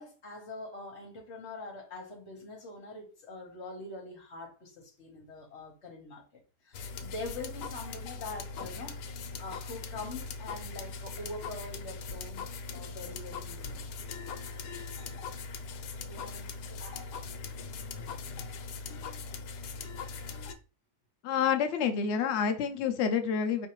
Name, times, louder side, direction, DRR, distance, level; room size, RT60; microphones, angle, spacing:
voice 1, 0.0-6.2 6.6-12.4 12.7-13.9 16.0-17.2 18.9-19.1, left 2 dB, 45° left, 1.3 m, -44 dB
sound 1, 6.7-20.5, left 4 dB, 90° left, 1.2 m, -40 dB
voice 2, 21.2-23.7, left 7 dB, 75° left, 0.6 m, -28 dB
4.5 x 3.2 x 3.0 m
omnidirectional pair, 1.7 m